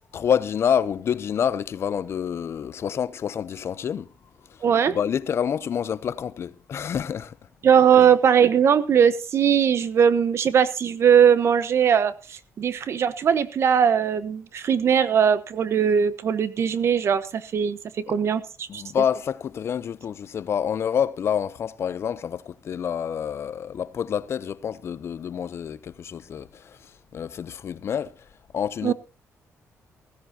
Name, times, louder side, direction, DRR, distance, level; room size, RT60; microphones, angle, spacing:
voice 1, 0.1-4.1 4.5-4.6 4.9-7.4 8.0-8.1 18.1-18.2 18.7-28.1 28.5-28.9, left 8 dB, 50° left, 0.7 m, -27 dB
voice 2, 4.6-5.0 7.6-17.8 18.1-18.8 28.8-28.9, right 8 dB, 55° right, 1.1 m, -20 dB
16.0 x 16.0 x 2.8 m
cardioid pair, 130°, 5 cm